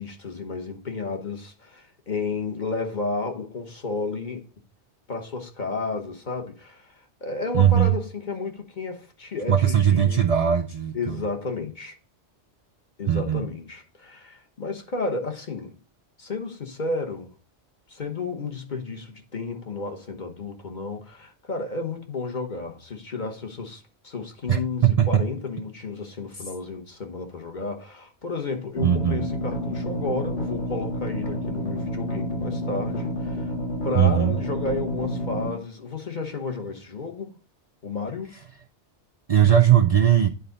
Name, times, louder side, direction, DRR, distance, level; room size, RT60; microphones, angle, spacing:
voice 1, 0.0-4.4 5.1-10.3 10.9-12.0 13.0-15.8 16.2-17.3 17.9-33.5 33.8-37.4 37.8-38.3, left 3 dB, 40° left, 1.2 m, -32 dB
voice 2, 7.5-7.9 9.5-11.2 13.1-13.4 24.5-25.1 28.8-29.2 33.9-34.3 39.3-40.3, right 9 dB, 60° right, 0.4 m, -19 dB
sound 1, 28.8-35.5, equal, 65° left, 2.2 m, -29 dB
9.4 x 3.9 x 3.9 m
omnidirectional pair, 1.2 m